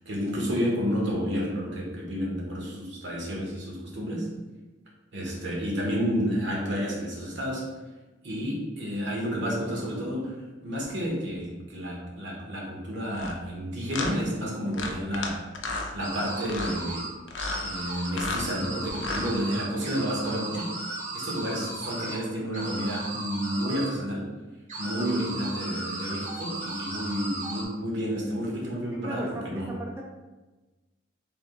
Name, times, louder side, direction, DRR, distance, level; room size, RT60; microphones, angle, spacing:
voice 1, 0.0-4.3 5.1-7.7 8.2-15.4 15.9-17.1 17.6-20.8 21.1-24.3 24.8-29.7, equal, 70° right, -2 dB, 1.1 m, -30 dB
sound 1, 13.1-13.3 13.9-14.1 14.7-15.3 15.5-15.9 16.4-16.8 17.3-17.6 18.0-18.5 18.9-19.3, left 3 dB, 75° left, 0.5 m, -32 dB
sound 2, 16.0-17.1 17.4-18.1 18.4-22.2 22.5-23.9 24.7-27.7, right 2 dB, 40° right, 0.8 m, -36 dB
voice 2, 29.0-30.0, right 1 dB, 15° right, -2 dB, 0.4 m, -36 dB
3.5 x 2.7 x 3.7 m, 1.2 s
head